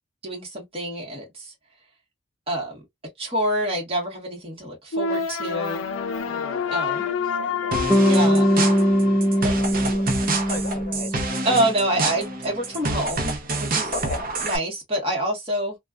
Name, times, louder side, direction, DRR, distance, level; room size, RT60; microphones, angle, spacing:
voice 1, 0.2-1.5 2.5-2.8 3.2-5.8 6.7-7.1 8.0-8.5 9.4-9.6 11.4-13.9 14.4-15.8, right 1 dB, 30° right, 1.5 m, -27 dB
sound 1, 4.9-9.9, left 6 dB, 85° left, 0.5 m, -28 dB
voice 2, 6.2-8.3 9.3-11.1 13.9-14.3, left 3 dB, 45° left, 0.7 m, -37 dB
sound 2, 7.7-14.6, right 3 dB, 45° right, 0.8 m, -28 dB
Bass guitar, 7.9-12.2, equal, ahead, 0.3 m, -21 dB
3.2 x 2.3 x 2.4 m
head